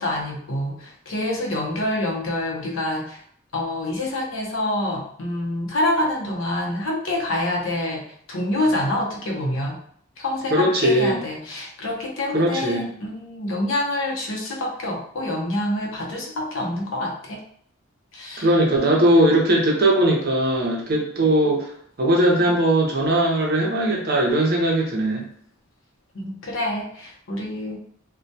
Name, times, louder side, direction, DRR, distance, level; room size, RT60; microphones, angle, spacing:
voice 1, 0.0-3.2 3.5-9.8 10.2-17.4 18.1-18.5 26.1-27.8, left 1 dB, 75° left, 0 dB, 0.6 m, -26 dB
voice 2, 10.5-11.2 12.3-12.9 18.4-21.7 22.0-25.3, right 1 dB, 50° right, -1 dB, 0.6 m, -19 dB
2.2 x 2.1 x 2.7 m, 0.62 s
head